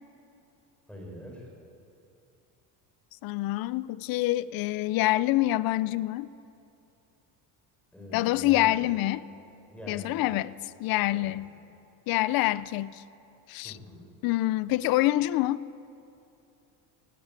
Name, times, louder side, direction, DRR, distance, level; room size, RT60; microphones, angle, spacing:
voice 1, 0.9-1.5 7.9-8.8 9.7-10.2 11.1-11.3 13.6-14.0, left 1 dB, 5° left, 5.0 m, -43 dB
voice 2, 3.2-6.3 8.1-9.3 9.9-10.5 10.8-11.5 12.1-13.0 13.5-13.8 14.2-15.6, left 16 dB, 55° left, 0.6 m, -26 dB
18.0 x 16.0 x 9.0 m
cardioid pair, 140°, 44 cm